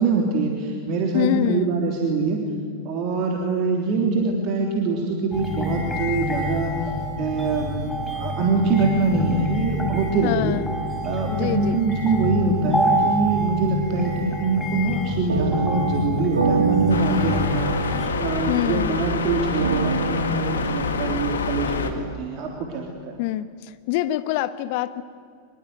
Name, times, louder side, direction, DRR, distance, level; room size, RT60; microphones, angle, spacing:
voice 1, 0.0-2.4 2.8-6.7 7.2-10.6 11.0-23.1, right 3 dB, 40° right, 1 dB, 3.4 m, -24 dB
voice 2, 1.1-1.7 10.2-10.7 11.3-11.8 18.5-19.0 23.2-23.5 23.9-25.0, left 13 dB, 45° left, 13 dB, 1.2 m, -25 dB
sound 1, 5.3-18.1, equal, 5° left, 5.4 m, -27 dB
sound 2, 13.9-22.2, right 5 dB, 70° right, 1.3 m, -28 dB
sound 3, 16.9-21.9, left 5 dB, 70° left, 2.1 m, -27 dB
25.0 x 22.5 x 9.6 m, 2.1 s
figure-of-eight pair, 90°, 0 cm